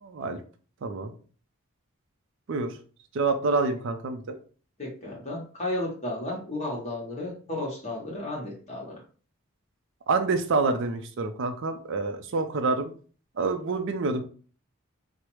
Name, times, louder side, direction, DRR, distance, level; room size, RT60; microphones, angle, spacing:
voice 1, 0.0-0.4 0.8-1.1 2.5-2.7 3.1-4.4 10.1-12.9 13.4-14.2, right 3 dB, 55° right, 7 dB, 0.4 m, -27 dB
voice 2, 4.8-8.9, left 1 dB, 30° left, -3 dB, 0.9 m, -33 dB
4.7 x 2.0 x 3.0 m, 0.41 s
head